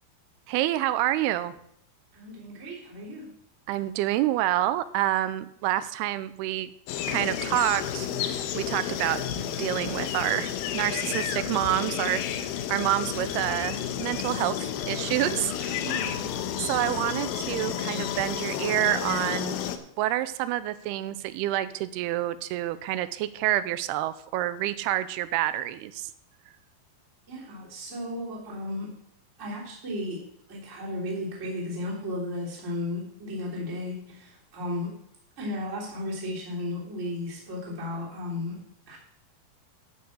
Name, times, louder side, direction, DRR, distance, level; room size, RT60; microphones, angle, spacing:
voice 1, 0.5-1.5 3.7-6.7 7.1-15.9 16.6-19.6 20.0-26.1, right 14 dB, 80° right, 14 dB, 2.4 m, -28 dB
voice 2, 2.1-3.3 15.8-16.3 27.3-29.0 29.4-35.0 35.4-39.0, left 1 dB, 20° right, -4 dB, 3.2 m, -35 dB
sound 1, 6.9-19.8, left 10 dB, 75° left, 2.4 m, -31 dB
12.5 x 6.0 x 7.2 m, 0.71 s
omnidirectional pair, 5.1 m